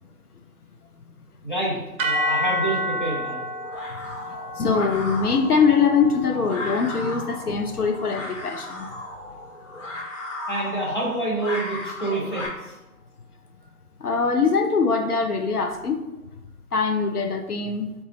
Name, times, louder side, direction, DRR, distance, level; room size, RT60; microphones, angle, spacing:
voice 1, 1.4-3.4 10.5-12.7, right 2 dB, 30° left, -3 dB, 0.8 m, -28 dB
sound 1, 2.0-10.3, left 1 dB, 60° right, 0.5 m, -32 dB
sound 2, 2.6-12.5, left 1 dB, 50° left, 1.3 m, -36 dB
voice 2, 4.3-8.9 14.0-16.0 16.7-17.9, left 5 dB, 75° left, 4 dB, 0.6 m, -22 dB
4.0 x 2.4 x 3.7 m, 1.0 s
figure-of-eight pair, 165°, 46 cm